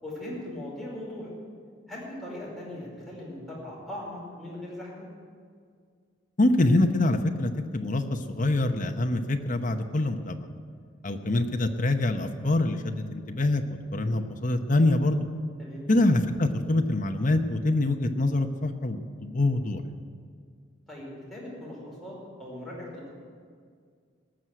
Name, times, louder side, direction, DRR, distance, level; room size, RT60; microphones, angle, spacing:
voice 1, 0.0-1.3 1.9-5.1 15.6-15.8 20.9-23.2, left 1 dB, ahead, -6 dB, 5.0 m, -39 dB
voice 2, 6.4-10.5 11.0-13.6 13.9-15.3 15.9-19.8, left 2 dB, 45° left, 5 dB, 0.9 m, -25 dB
19.0 x 6.4 x 9.1 m, 2.1 s
head